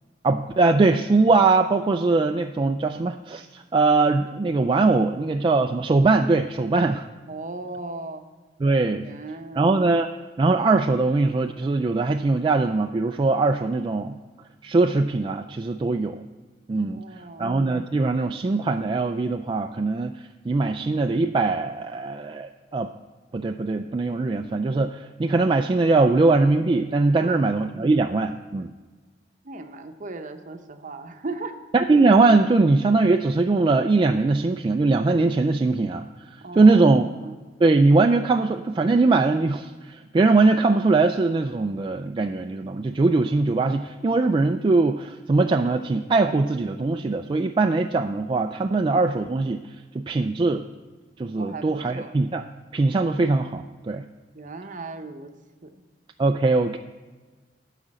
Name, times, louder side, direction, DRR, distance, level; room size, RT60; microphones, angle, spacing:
voice 1, 0.2-7.1 8.6-9.1 9.6-10.1 10.4-14.1 14.6-16.2 16.7-17.0 17.4-20.2 20.5-22.9 23.3-28.7 31.7-36.0 36.3-37.1 37.6-49.6 49.9-50.7 51.2-52.4 52.7-54.0 56.2-56.8, right 3 dB, 30° right, 5 dB, 0.3 m, -21 dB
voice 2, 7.3-8.2 9.0-9.7 16.8-17.5 27.2-27.5 29.4-31.6 36.4-37.4 51.3-52.1 54.3-55.3 55.6-55.8, right 3 dB, 45° right, 7 dB, 0.8 m, -37 dB
12.0 x 5.0 x 7.5 m, 1.3 s
head